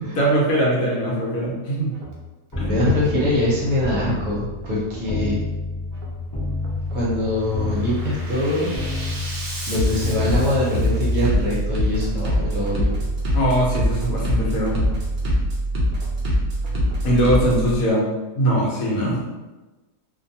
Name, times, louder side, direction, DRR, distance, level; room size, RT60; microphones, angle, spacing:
voice 1, 0.1-1.9 2.6-2.8 13.3-14.8 17.0-18.0 18.4-19.2, right 1 dB, 70° left, -4 dB, 1.0 m, -21 dB
Bass drum, 1.9-2.2 2.6-3.1 3.9-4.2 4.6-5.1 5.9-6.2 6.6-7.1 7.5-17.8, equal, 80° right, 0.4 m, -25 dB
sound 1, 2.5-13.9 14.3-15.4, left 2 dB, 25° left, 0.5 m, -31 dB
voice 2, 2.6-5.4 6.9-8.7 9.7-12.9 16.8-16.9, left 1 dB, 65° right, -5 dB, 0.9 m, -23 dB
2.6 x 2.2 x 2.6 m, 1.2 s
omnidirectional pair, 1.7 m